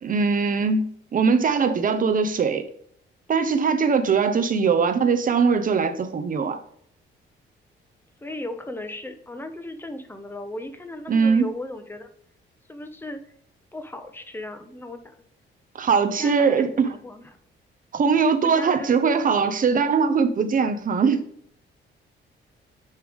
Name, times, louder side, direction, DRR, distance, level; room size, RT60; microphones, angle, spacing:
voice 1, 0.0-2.7 3.3-6.6 11.1-11.4 15.7-16.9 17.9-21.2, right 5 dB, 45° right, 0.9 m, -21 dB
voice 2, 8.2-12.1 12.7-13.2 13.7-15.2 16.1-17.2 18.4-18.9, left 1 dB, 10° left, 1.0 m, -36 dB
9.5 x 3.4 x 3.6 m
cardioid pair, 90°, 20 cm